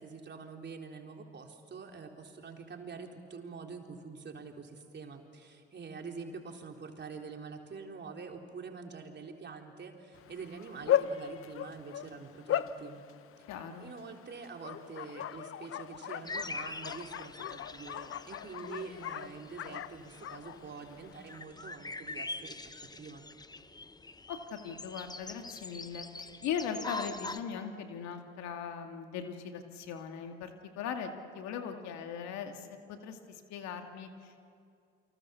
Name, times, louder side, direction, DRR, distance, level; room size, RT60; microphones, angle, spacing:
voice 1, 0.0-13.0 13.8-23.2, right 5 dB, 40° right, 2 dB, 3.8 m, -46 dB
Bark, 10.1-21.4, left 10 dB, 50° left, 0.9 m, -38 dB
voice 2, 13.5-13.9 24.3-30.5 30.8-34.5, left 7 dB, 70° left, 5 dB, 2.4 m, -39 dB
sound 1, 16.2-27.4, left 3 dB, 15° left, 1.2 m, -44 dB
28.5 x 25.0 x 7.0 m, 2.4 s
hypercardioid pair, 65°, 29 cm